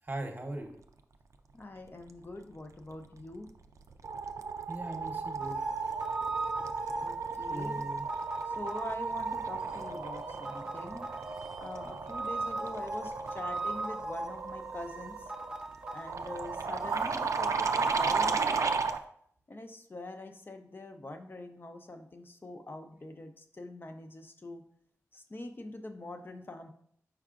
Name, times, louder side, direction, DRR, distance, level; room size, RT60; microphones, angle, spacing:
voice 1, 0.0-0.8 4.7-5.6 7.5-8.1, right 1 dB, 35° right, 4 dB, 0.9 m, -39 dB
voice 2, 1.5-3.5 7.0-7.8 8.5-11.3 11.6-15.3 15.9-18.8 19.5-24.6 25.1-26.7, left 1 dB, 40° left, 5 dB, 0.5 m, -44 dB
sound 1, 3.2-3.5 3.8-19.0, right 4 dB, 65° right, 0.3 m, -34 dB
sound 2, 5.4-19.0, right 2 dB, 15° right, 0.5 m, -41 dB
4.8 x 4.6 x 2.4 m, 0.65 s
cardioid pair, 50°, 6 cm